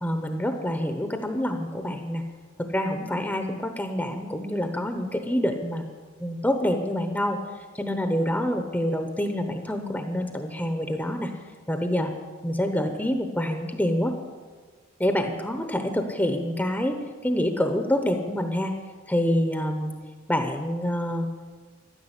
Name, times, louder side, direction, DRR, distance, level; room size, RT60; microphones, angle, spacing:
voice 1, 0.0-2.2 2.7-5.9 6.2-11.3 11.7-12.1 12.4-14.1 15.0-17.0 17.2-18.7 19.1-19.9 20.3-21.3, equal, 5° left, 5 dB, 0.9 m, -26 dB
14.0 x 11.0 x 8.1 m, 1.5 s
head